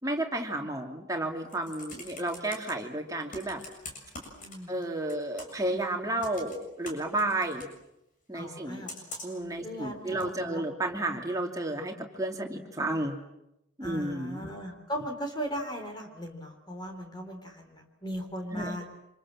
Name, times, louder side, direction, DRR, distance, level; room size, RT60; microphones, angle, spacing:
voice 1, 0.0-3.6 4.7-7.7 8.3-8.9 9.2-13.1 13.8-14.5 18.5-18.7, right 1 dB, 15° right, 2 dB, 3.0 m, -32 dB
Computer keyboard, 1.3-2.7 3.3-4.8 5.1-5.7 6.2-7.7 8.9-9.5 10.2-10.3, left 2 dB, 40° left, 7.0 m, -43 dB
voice 2, 4.4-4.7 8.3-8.9 9.6-10.6 13.8-18.8, equal, 20° left, 4 dB, 3.6 m, -38 dB
27.5 x 26.5 x 7.6 m, 0.86 s
head